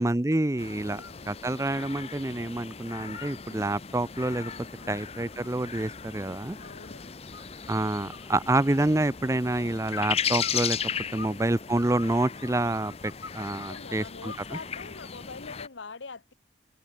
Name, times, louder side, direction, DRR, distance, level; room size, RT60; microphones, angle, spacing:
voice 1, 0.0-1.0 1.3-4.5 4.9-6.6 7.7-10.8 11.1-14.6, right 1 dB, 15° right, 0.6 m, -28 dB
sound 1, 0.6-15.7, left 7 dB, 35° left, 0.8 m, -37 dB
voice 2, 0.8-1.2 4.8-5.0 6.6-7.2 11.1-11.5 13.4-16.3, left 4 dB, 90° left, 1.2 m, -44 dB
sound 2, 0.8-1.2 1.5-2.5 2.8-3.7 4.1-6.9 7.3-7.8 8.1-9.1 9.9-11.4 11.7-13.8 14.3-15.0, left 4 dB, 70° left, 4.2 m, -46 dB
sound 3, 1.7-2.0 2.9-9.9, equal, 5° left, 5.9 m, -61 dB
head